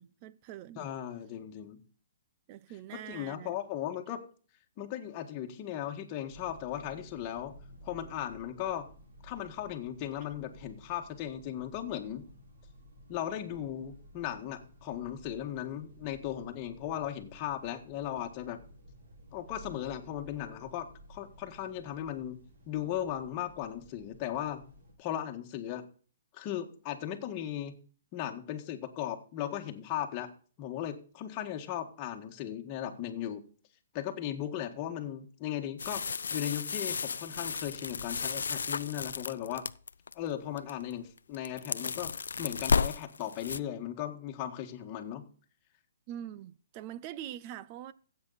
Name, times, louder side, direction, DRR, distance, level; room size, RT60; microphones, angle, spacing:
voice 1, 0.0-0.9 2.5-3.5 46.1-47.9, right 11 dB, 30° right, 0.7 m, -43 dB
voice 2, 0.8-1.8 3.1-4.2 4.8-7.6 7.8-8.9 9.2-12.3 13.1-18.6 19.3-22.4 22.7-24.6 25.0-25.8 26.3-27.8 28.1-30.3 30.6-33.4 33.9-36.0 36.3-39.6 40.1-42.1 42.4-45.2, left 11 dB, 30° left, 1.7 m, -37 dB
sound 1, 6.3-24.9, equal, 65° right, 6.5 m, -54 dB
sound 2, 35.8-40.1 40.6-40.9 41.2-43.6, left 5 dB, 90° left, 0.4 m, -33 dB
14.5 x 8.3 x 4.2 m
hypercardioid pair, 155°, 0 cm